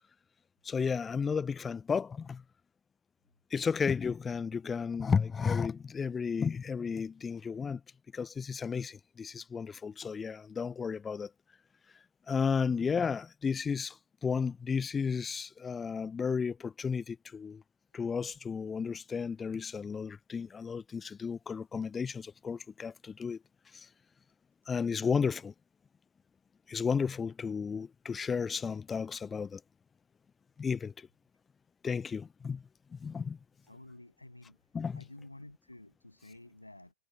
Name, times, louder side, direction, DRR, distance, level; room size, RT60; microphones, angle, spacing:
voice 1, 0.6-2.4 3.5-7.8 8.1-11.3 12.3-17.6 17.9-23.4 23.7-23.9 24.7-25.5 26.7-29.6 30.6-31.1 31.8-32.6 32.9-33.4 34.7-35.0, left 6 dB, 15° left, 0.7 m, -33 dB
voice 2, 33.6-34.6 35.0-36.9, left 1 dB, 85° left, 8.0 m, -51 dB
figure-of-eight pair, 90°, 0 cm